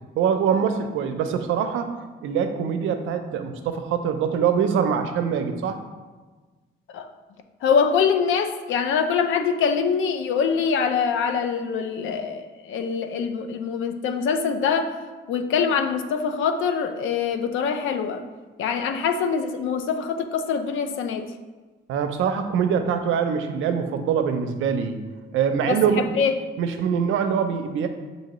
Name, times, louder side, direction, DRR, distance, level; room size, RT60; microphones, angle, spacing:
voice 1, 0.2-2.0 2.2-5.8 21.9-25.0 25.3-26.2 26.6-27.9, right 7 dB, 80° right, 7 dB, 0.5 m, -23 dB
voice 2, 7.6-15.0 15.3-18.2 18.6-21.3 25.7-26.4, left 6 dB, 80° left, 7 dB, 0.5 m, -24 dB
6.4 x 2.7 x 2.9 m, 1.3 s
cardioid pair, 90°, 20 cm